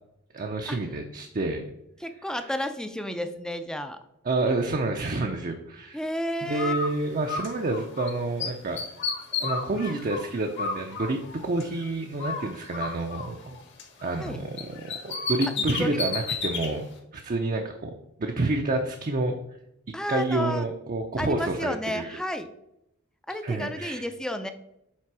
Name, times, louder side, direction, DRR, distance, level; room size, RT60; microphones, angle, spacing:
voice 1, 0.3-1.7 4.2-6.0 6.4-8.8 9.4-13.6 14.0-16.8 17.1-17.9 18.2-19.4 20.1-22.2 23.4-24.1, right 2 dB, 40° right, 3 dB, 0.5 m, -29 dB
voice 2, 2.0-4.0 5.9-6.7 14.2-14.4 15.4-15.5 15.8-16.0 19.9-20.7 21.2-22.5 23.3-24.5, equal, 5° left, 8 dB, 0.4 m, -31 dB
Bird, 6.5-8.1 8.4-11.8 12.2-14.3 14.6-16.7, left 4 dB, 55° left, 1.4 m, -32 dB
7.4 x 3.4 x 4.7 m, 0.82 s
head